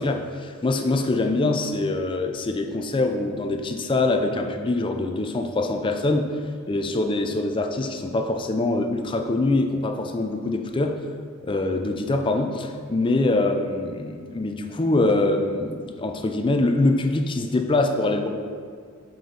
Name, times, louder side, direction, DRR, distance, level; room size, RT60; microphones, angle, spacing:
voice 1, 0.0-6.3 6.7-11.0 11.4-18.3, left 2 dB, 25° left, 5 dB, 0.4 m, -24 dB
7.8 x 4.4 x 3.8 m, 2.1 s
head